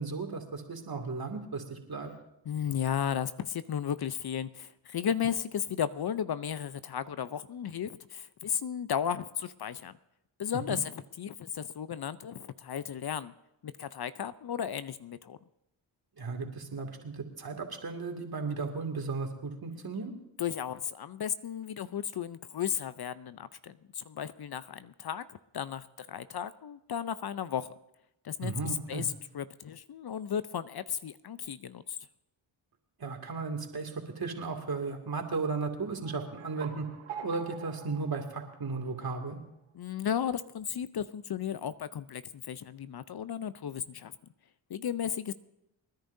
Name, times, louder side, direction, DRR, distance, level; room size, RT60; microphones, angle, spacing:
voice 1, 0.0-2.1 10.7-10.8 16.2-20.1 28.4-29.1 33.0-39.4, right 4 dB, 45° right, 3 dB, 2.5 m, -35 dB
voice 2, 2.4-9.9 10.4-13.3 13.6-15.4 20.4-27.7 28.2-32.0 39.7-44.1 44.7-45.3, left 8 dB, 50° left, 14 dB, 0.7 m, -34 dB
sound 1, 36.0-39.3, right 7 dB, 80° right, 1.6 m, -46 dB
28.5 x 10.5 x 2.7 m, 0.86 s
supercardioid pair, 40°, 49 cm